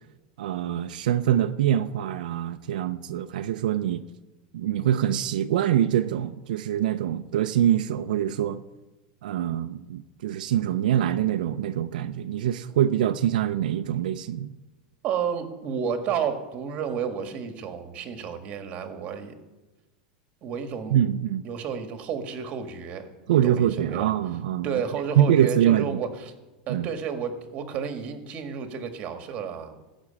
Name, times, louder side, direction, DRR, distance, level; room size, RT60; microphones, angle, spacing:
voice 1, 0.4-4.0 4.5-8.6 9.2-14.5 20.9-21.5 23.3-24.8 25.2-26.0 26.7-26.9, right 11 dB, 85° right, 8 dB, 0.7 m, -24 dB
voice 2, 15.0-19.3 20.4-20.9 21.4-24.1 24.6-26.3 26.7-29.9, right 7 dB, 30° right, 7 dB, 1.7 m, -31 dB
19.0 x 6.3 x 8.7 m, 1.1 s
supercardioid pair, 165°, 4 cm